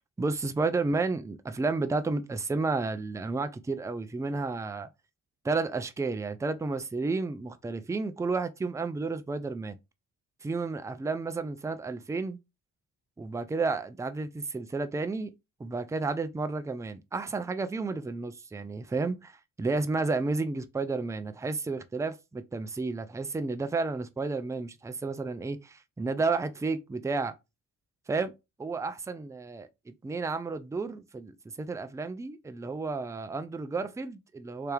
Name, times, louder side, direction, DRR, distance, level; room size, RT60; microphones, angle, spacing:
voice 1, 0.2-4.9 5.4-9.8 10.4-12.4 13.2-15.3 15.6-27.3 28.1-28.3 28.6-34.7, right 3 dB, 5° right, 0.4 m, -32 dB
3.3 x 2.9 x 3.3 m
hypercardioid pair, 45°, 43 cm